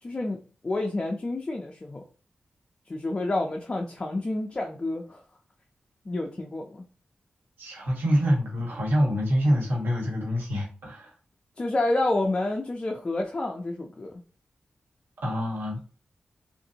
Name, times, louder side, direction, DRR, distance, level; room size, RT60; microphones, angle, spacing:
voice 1, 0.0-2.0 2.9-5.2 6.1-6.9 11.6-14.2, left 2 dB, 25° left, 1 dB, 0.5 m, -29 dB
voice 2, 7.6-11.1 15.2-15.8, equal, 90° right, -2 dB, 1.4 m, -26 dB
3.7 x 2.5 x 2.8 m, 0.39 s
wide cardioid pair, 140°, 3 cm